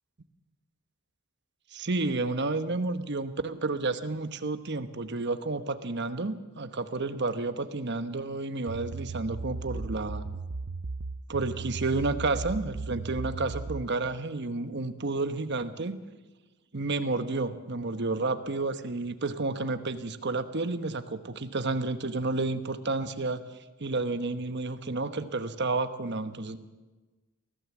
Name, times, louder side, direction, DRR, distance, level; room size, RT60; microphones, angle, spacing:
voice 1, 1.7-10.2 11.3-16.0 16.7-23.4 23.8-26.6, right 3 dB, 55° right, 10 dB, 1.1 m, -31 dB
sound 1, 8.7-13.9, right 3 dB, 80° right, 0.7 m, -36 dB
23.5 x 16.0 x 7.4 m, 1.2 s
head